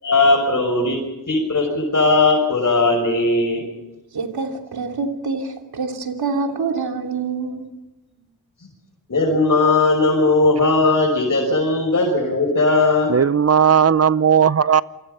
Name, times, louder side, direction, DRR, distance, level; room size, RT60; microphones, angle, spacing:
voice 1, 0.0-1.0 1.3-3.7 9.1-13.1, left 3 dB, 45° left, -2 dB, 6.4 m, -18 dB
voice 2, 4.1-7.7, right 4 dB, 75° right, 3 dB, 3.0 m, -26 dB
voice 3, 13.1-14.8, right 7 dB, 40° right, 17 dB, 0.7 m, -15 dB
28.0 x 24.0 x 5.7 m, 1.0 s
cardioid pair, 60°, 38 cm